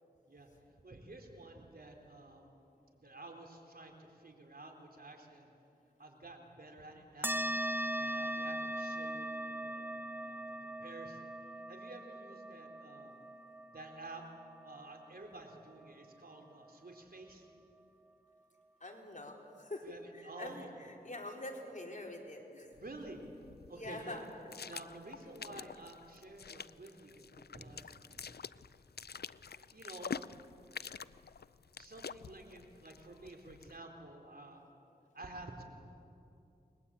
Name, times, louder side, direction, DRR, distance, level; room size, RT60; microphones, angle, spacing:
voice 1, 0.3-2.6 2.9-5.5 6.0-7.4 7.9-13.2 13.7-14.2 14.6-17.5 19.8-20.7 22.8-23.2 23.7-24.2 24.7-28.3 29.0-29.1 29.5-30.3 31.8-34.7 35.1-35.6, right 2 dB, 60° right, 2 dB, 3.9 m, -51 dB
sound 1, 7.2-16.1, right 1 dB, 10° right, 1.5 m, -40 dB
voice 2, 18.8-19.8 20.1-22.7 23.7-24.3, left 1 dB, 45° left, 0 dB, 4.4 m, -45 dB
sound 2, 22.7-33.8, left 6 dB, 70° left, 0.5 m, -48 dB
29.5 x 21.5 x 8.7 m, 2.7 s
wide cardioid pair, 45°, 17 cm